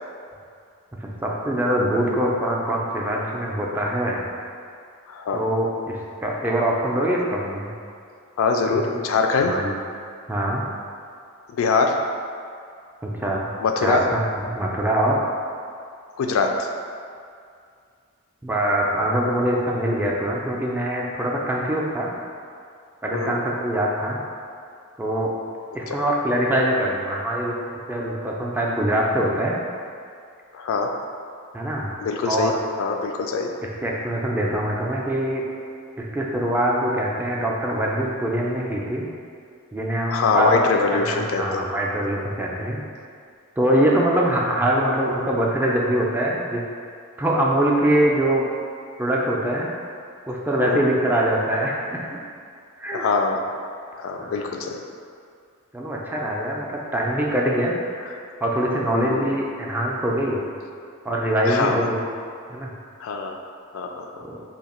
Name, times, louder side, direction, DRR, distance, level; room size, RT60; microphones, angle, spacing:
voice 1, 1.0-4.3 5.3-7.7 8.7-8.8 9.4-9.7 10.3-10.6 13.0-13.5 13.8-15.2 18.4-22.1 23.0-24.2 25.0-25.3 25.7-27.5 27.9-29.6 31.5-31.9 32.3-32.6 33.6-35.4 36.0-39.1 39.7-40.7 40.9-42.8 43.6-46.6 47.2-48.4 49.0-49.7 50.3-52.2 52.8-53.0 54.2-54.5 55.7-57.8 58.4-60.4 61.0-62.0 62.5-62.7 64.2-64.4, right 1 dB, 10° right, -3 dB, 0.3 m, -23 dB
voice 2, 5.1-5.4 8.4-9.6 11.5-12.0 13.6-14.0 16.2-16.7 23.1-23.3 25.9-26.0 30.5-30.9 32.0-32.5 32.8-33.5 40.1-41.6 50.6-50.8 52.9-53.6 54.0-54.8 58.9-59.4 61.4-61.8 63.0-63.4 63.7-64.1, left 4 dB, 70° left, 3 dB, 0.3 m, -23 dB
2.8 x 2.5 x 4.2 m, 2.3 s
head